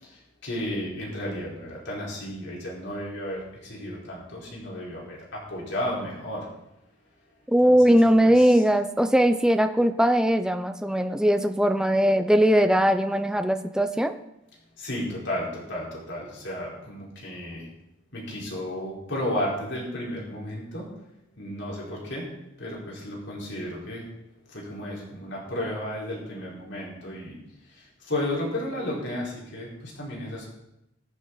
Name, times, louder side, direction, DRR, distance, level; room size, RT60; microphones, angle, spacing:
voice 1, 0.0-6.5 7.6-8.6 14.8-17.7 18.1-20.9 21.4-22.3 22.6-24.1 24.5-27.4 27.7-30.5, left 1 dB, 65° left, -4 dB, 4.5 m, -33 dB
voice 2, 7.5-14.2, equal, 5° right, 8 dB, 0.7 m, -20 dB
23.0 x 8.1 x 4.1 m, 0.87 s
head